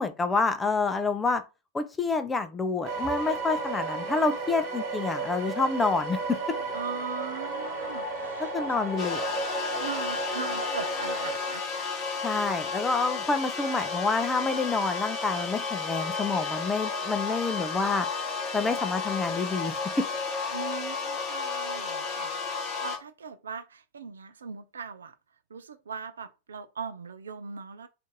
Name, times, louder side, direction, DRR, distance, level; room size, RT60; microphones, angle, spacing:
voice 1, 0.0-1.4 1.7-6.2 8.5-9.2 12.2-18.1 18.5-19.7, left 4 dB, 15° left, 0.4 m, -28 dB
sound 1, 2.8-11.4, right 2 dB, 45° right, 1.3 m, -33 dB
voice 2, 6.7-8.8 9.8-11.6 20.5-25.1 25.5-27.9, right 6 dB, 70° right, 0.3 m, -40 dB
sound 2, 9.0-23.0, left 4 dB, 35° left, 0.8 m, -32 dB
2.6 x 2.5 x 3.7 m
figure-of-eight pair, 90°, 0 cm